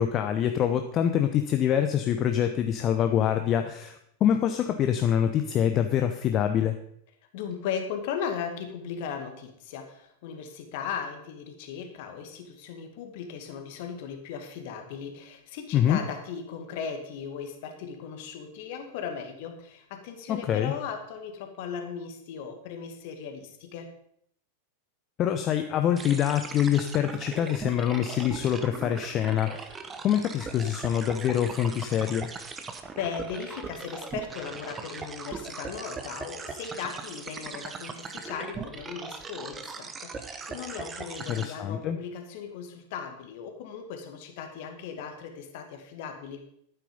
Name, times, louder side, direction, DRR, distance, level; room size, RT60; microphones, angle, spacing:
voice 1, 0.0-6.7 15.7-16.0 20.3-20.7 25.2-29.6 30.0-32.3 41.3-42.0, left 9 dB, 30° left, 7 dB, 0.8 m, -25 dB
voice 2, 7.3-23.9 33.0-46.4, left 7 dB, 50° left, 5 dB, 2.1 m, -37 dB
sound 1, 26.0-41.5, right 4 dB, 20° right, 1.2 m, -39 dB
12.0 x 9.3 x 5.3 m, 0.72 s
figure-of-eight pair, 90°, 0 cm